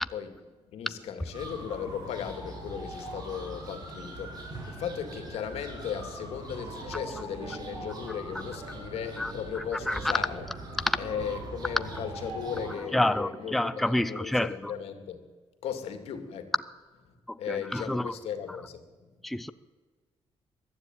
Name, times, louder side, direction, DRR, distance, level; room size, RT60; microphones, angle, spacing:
voice 1, 0.7-10.5 11.0-15.2 15.6-16.5 17.4-19.1, left 8 dB, 85° left, 7 dB, 2.5 m, -37 dB
sound 1, 1.3-12.7, right 2 dB, 40° right, 7.1 m, -41 dB
sound 2, 6.6-14.2, right 5 dB, 65° right, 3.3 m, -48 dB
voice 2, 9.2-10.1 10.9-11.0 12.9-14.7 17.3-18.1 19.2-19.5, left 1 dB, ahead, 13 dB, 0.5 m, -29 dB
22.5 x 12.5 x 9.2 m, 1.5 s
cardioid pair, 160°, 10 cm